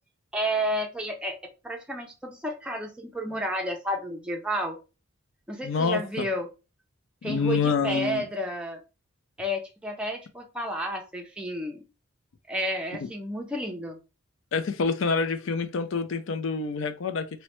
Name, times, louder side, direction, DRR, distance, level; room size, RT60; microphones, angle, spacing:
voice 1, 0.3-1.4 1.6-4.8 5.5-6.5 7.2-8.8 9.4-11.8 12.5-14.0, equal, 5° right, 0.4 m, -31 dB
voice 2, 5.6-6.3 7.2-8.2 14.5-17.3, left 4 dB, 65° left, 0.4 m, -27 dB
3.1 x 2.1 x 3.0 m
head